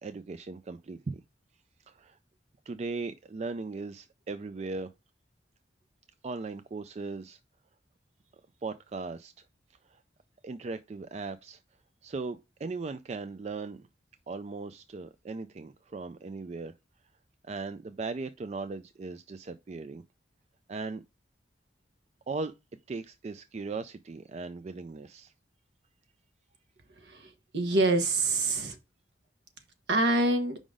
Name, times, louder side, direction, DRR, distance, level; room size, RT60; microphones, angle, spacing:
voice 1, 0.0-1.2 1.9-2.2 2.7-4.9 6.2-7.4 8.6-9.3 9.9-10.0 10.4-11.6 12.0-13.9 14.3-16.7 17.4-20.0 20.7-21.0 22.3-22.5 22.9-25.3, right 3 dB, 35° right, 0.3 m, -38 dB
voice 2, 27.1-28.8 29.9-30.6, right 2 dB, 70° right, 1.2 m, -26 dB
5.1 x 3.8 x 4.9 m
head